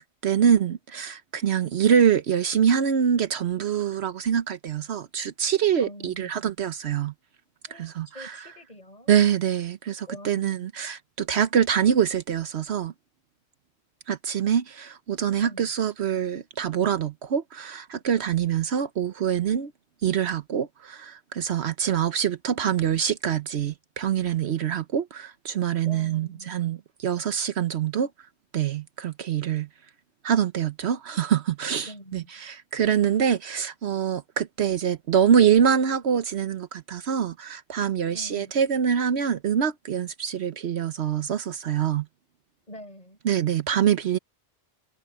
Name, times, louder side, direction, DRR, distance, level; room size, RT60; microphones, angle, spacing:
voice 1, 0.2-7.1 7.8-8.4 9.1-12.9 14.1-19.7 20.0-28.1 28.5-29.7 30.2-42.1 43.2-44.2, right 8 dB, 70° right, 1.1 m, -25 dB
voice 2, 5.8-6.2 7.7-9.1 10.1-10.7 15.4-15.7 25.9-26.5 31.8-32.3 38.1-38.5 42.7-43.2, equal, 35° left, 7.0 m, -44 dB
omnidirectional pair, 1.2 m